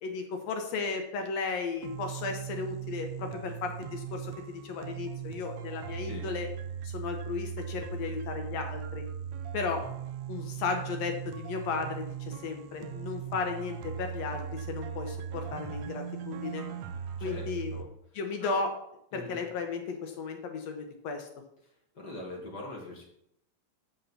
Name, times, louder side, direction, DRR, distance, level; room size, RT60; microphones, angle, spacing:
voice 1, 0.0-6.5 6.8-9.1 9.5-9.8 10.3-16.6 17.2-17.7 18.2-18.7 19.1-21.3, left 4 dB, 70° left, 5 dB, 1.8 m, -35 dB
sound 1, 1.8-17.8, right 9 dB, 85° right, 1.5 m, -39 dB
voice 2, 17.2-17.9 18.4-18.6 19.1-19.4 21.9-23.0, left 1 dB, 55° left, -1 dB, 1.2 m, -42 dB
6.4 x 5.5 x 6.9 m, 0.74 s
omnidirectional pair, 3.9 m